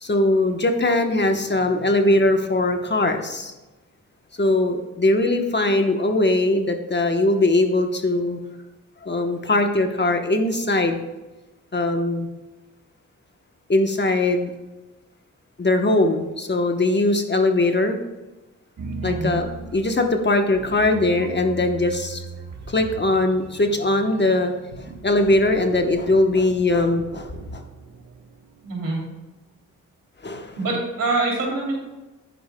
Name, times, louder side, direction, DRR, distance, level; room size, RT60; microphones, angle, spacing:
voice 1, 0.0-3.5 4.4-8.4 9.0-11.0 11.7-12.3 13.7-14.5 15.6-18.0 19.0-22.2 22.7-27.6 30.2-30.6, left 2 dB, 35° left, 5 dB, 1.0 m, -21 dB
sound 1, 18.8-28.9, right 4 dB, 60° right, 1.3 m, -38 dB
voice 2, 19.0-19.3 28.6-29.0 30.6-31.7, right 3 dB, 85° right, -3 dB, 3.0 m, -25 dB
10.0 x 9.5 x 2.2 m, 1.1 s
cardioid pair, 60°, 32 cm